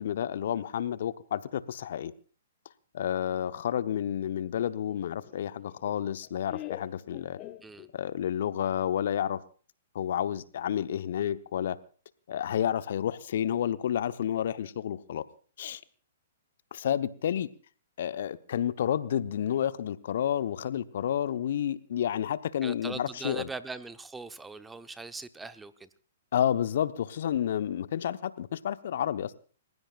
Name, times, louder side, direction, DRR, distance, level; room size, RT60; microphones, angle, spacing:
voice 1, 0.0-2.1 2.9-7.4 7.9-9.4 9.9-11.8 12.3-15.2 15.6-15.8 16.7-17.5 18.0-23.4 26.3-29.3, left 10 dB, 60° left, 14 dB, 0.9 m, -30 dB
Laughter, 4.5-8.2, left 16 dB, 35° left, 1.1 m, -45 dB
voice 2, 22.6-25.9, right 3 dB, 10° right, 12 dB, 1.0 m, -41 dB
29.5 x 16.0 x 2.5 m, 0.41 s
hypercardioid pair, 120°, 0 cm